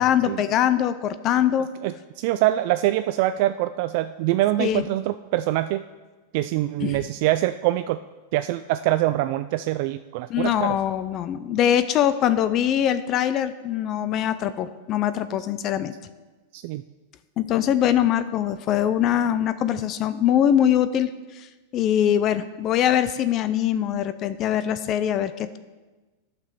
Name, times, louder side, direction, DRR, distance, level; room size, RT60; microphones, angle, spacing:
voice 1, 0.0-1.7 4.6-4.8 6.8-7.0 10.3-15.9 17.4-21.5 21.7-25.6, left 10 dB, 40° left, 13 dB, 0.5 m, -22 dB
voice 2, 1.8-5.8 6.3-8.0 8.3-10.8 16.5-16.8, right 15 dB, 55° right, 11 dB, 0.3 m, -24 dB
9.8 x 5.9 x 6.7 m, 1.2 s
hypercardioid pair, 125°, 0 cm